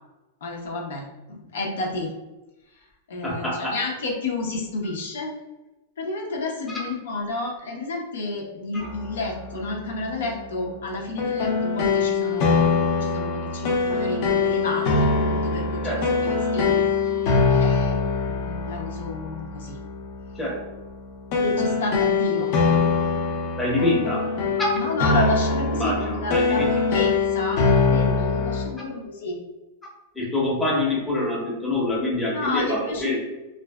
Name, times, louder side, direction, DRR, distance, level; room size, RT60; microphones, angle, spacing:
voice 1, 0.4-2.1 2.7-2.8 3.1-5.3 6.0-16.8 17.5-18.0 18.3-19.8 21.4-22.5 24.7-29.4 32.3-33.2, left 2 dB, 85° left, 0 dB, 0.6 m, -30 dB
voice 2, 3.2-3.8 15.8-16.3 20.3-20.6 23.6-24.3 25.7-26.7 30.1-33.2, left 2 dB, 5° left, -4 dB, 0.6 m, -25 dB
sound 1, 8.8-28.7, left 4 dB, 45° left, 0.5 m, -24 dB
2.5 x 2.3 x 2.2 m, 1.0 s
supercardioid pair, 145°, 0 cm